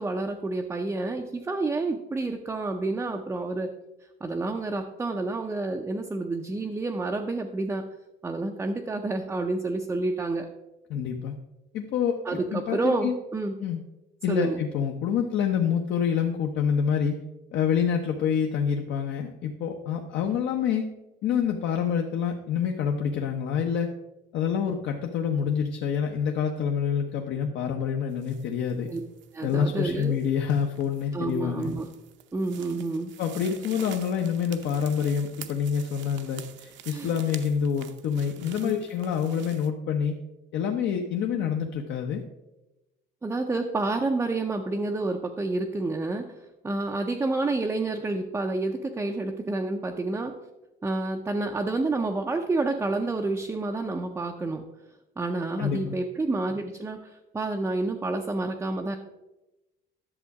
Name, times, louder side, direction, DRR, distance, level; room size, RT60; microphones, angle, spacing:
voice 1, 0.0-3.7 4.2-7.8 8.2-10.5 12.3-13.5 14.3-14.6 28.9-29.0 29.3-30.1 31.1-31.9 32.3-33.1 36.9-37.1 38.6-38.7 43.2-46.4 46.6-50.3 50.8-54.7 55.2-59.0, right 2 dB, 10° right, 3 dB, 0.5 m, -29 dB
voice 2, 10.9-11.3 11.7-12.2 12.5-13.1 13.6-13.8 14.2-17.2 17.5-20.9 21.2-23.9 24.3-28.9 29.4-31.7 33.2-40.2 40.5-42.2 55.6-55.9, left 7 dB, 60° left, 3 dB, 0.8 m, -27 dB
sound 1, 28.1-39.7, right 11 dB, 65° right, 0.7 m, -47 dB
11.0 x 7.1 x 4.7 m, 1.0 s
cardioid pair, 175°, 21 cm